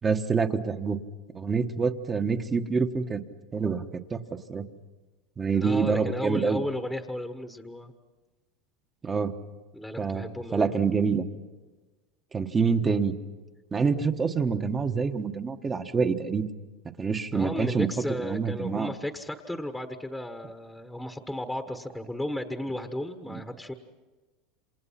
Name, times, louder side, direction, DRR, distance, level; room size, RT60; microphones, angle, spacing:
voice 1, 0.0-1.0 1.3-3.2 3.5-3.8 4.1-4.2 4.5-4.6 5.4-6.6 9.0-9.3 10.0-11.2 12.3-13.1 13.7-16.5 17.0-17.9 18.2-18.9 23.3-23.4, right 5 dB, 20° right, 7 dB, 1.3 m, -26 dB
voice 2, 5.5-7.9 9.7-10.8 17.3-23.7, left 1 dB, 5° left, 6 dB, 1.3 m, -34 dB
28.0 x 26.5 x 5.8 m, 1.2 s
supercardioid pair, 125°, 0 cm